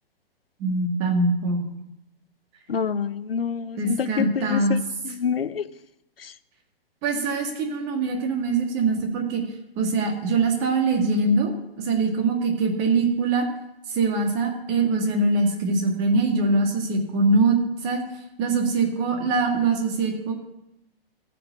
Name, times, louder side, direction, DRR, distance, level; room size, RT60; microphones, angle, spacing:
voice 1, 0.6-1.6 3.8-4.8 7.0-9.4 9.8-13.5 13.9-18.0 18.4-20.3, right 3 dB, 30° right, 3 dB, 2.0 m, -23 dB
voice 2, 2.7-4.8 5.1-5.6, left 6 dB, 70° left, 14 dB, 0.7 m, -27 dB
14.5 x 5.2 x 7.0 m, 0.84 s
figure-of-eight pair, 120°, 30 cm